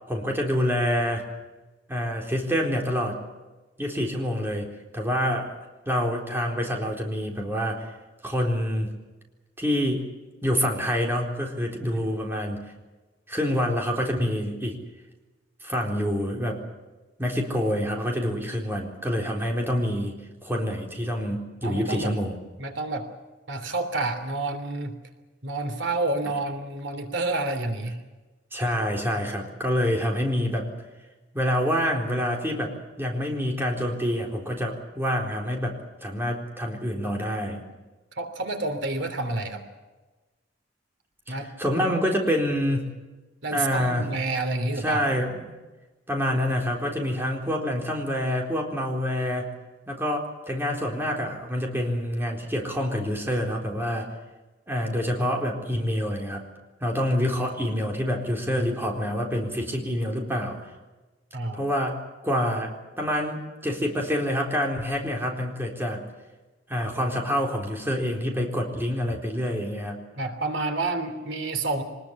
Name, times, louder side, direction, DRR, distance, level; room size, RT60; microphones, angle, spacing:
voice 1, 0.1-1.3 1.9-3.2 3.8-5.5 5.9-7.9 8.2-8.9 9.6-10.1 10.4-12.6 13.3-14.8 15.6-16.6 17.2-22.3 28.5-30.7 31.3-37.6 41.3-42.8 43.5-44.1 44.8-45.5 46.1-49.5 49.9-54.1 54.7-56.5 56.8-60.6 61.5-62.0 62.2-66.0 66.7-70.0, equal, 15° right, 0 dB, 4.0 m, -27 dB
voice 2, 21.6-22.1 22.6-23.1 23.5-25.0 25.4-28.0 38.2-39.6 41.3-41.5 43.4-45.0 61.3-61.6 70.2-71.8, right 2 dB, 90° right, 7 dB, 3.1 m, -29 dB
24.0 x 20.5 x 7.2 m, 1.2 s
head